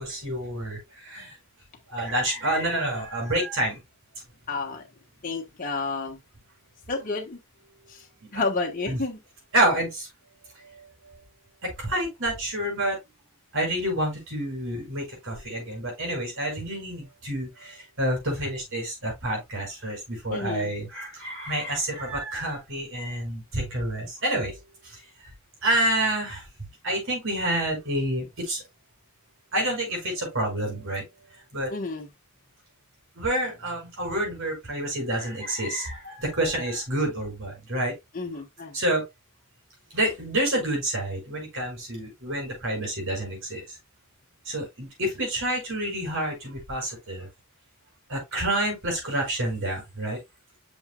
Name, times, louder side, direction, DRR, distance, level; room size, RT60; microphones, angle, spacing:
voice 1, 0.0-1.3 1.9-3.8 8.2-8.3 8.9-9.0 9.5-10.1 11.6-13.0 13.5-24.6 24.8-25.0 25.6-26.4 26.8-28.6 29.5-31.0 31.5-31.7 33.2-37.9 38.7-39.0 39.9-43.6 44.5-47.3 48.1-50.2, right 1 dB, 65° right, 5.6 m, -28 dB
voice 2, 4.5-4.8 5.2-6.2 6.9-7.4 7.9-8.0 8.3-9.2 20.3-20.7 31.7-32.1 38.1-38.8, left 3 dB, 40° left, 1.2 m, -30 dB
7.9 x 6.5 x 2.3 m
head